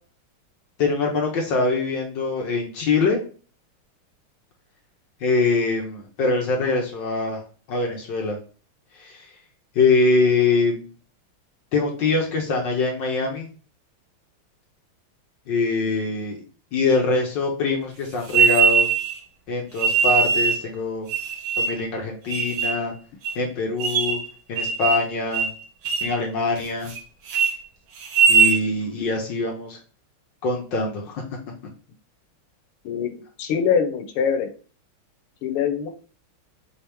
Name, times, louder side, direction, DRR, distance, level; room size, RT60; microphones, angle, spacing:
voice 1, 0.8-3.2 5.2-7.4 7.7-8.4 8.9-9.3 9.7-10.9 11.7-13.5 15.5-16.4 16.7-18.9 19.5-21.1 21.6-22.9 23.3-24.2 24.5-25.5 26.0-26.9 28.3-29.8 30.4-31.2, left 3 dB, 65° left, 0 dB, 1.5 m, -23 dB
sound 1, 18.3-19.1 19.8-20.6 21.1-21.8 22.3-22.8 23.2-23.3 23.8-24.3 24.6-25.1 25.3-25.5 25.8-26.2 26.6-27.0 27.3-27.5 28.0-28.6, right 6 dB, 75° right, 1.7 m, -20 dB
voice 2, 33.4-34.5 35.4-35.9, left 7 dB, 85° left, 8 dB, 1.7 m, -23 dB
4.9 x 3.0 x 3.4 m, 0.38 s
omnidirectional pair, 2.4 m